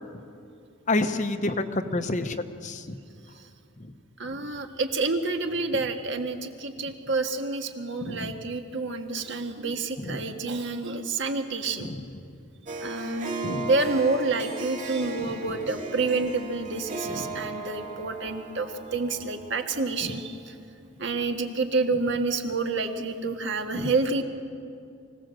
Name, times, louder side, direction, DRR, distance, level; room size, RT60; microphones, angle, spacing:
voice 1, 0.9-3.0 8.0-8.3 10.0-10.2 11.8-12.0 13.4-13.7 17.2-17.4 23.7-23.9, left 2 dB, 35° left, 9 dB, 0.9 m, -29 dB
voice 2, 4.2-11.9 12.8-20.5 21.0-24.2, right 3 dB, 60° right, 5 dB, 1.7 m, -28 dB
Harp, 12.7-20.2, right 3 dB, 35° right, 2.1 m, -37 dB
24.5 x 17.0 x 7.7 m, 2.5 s
head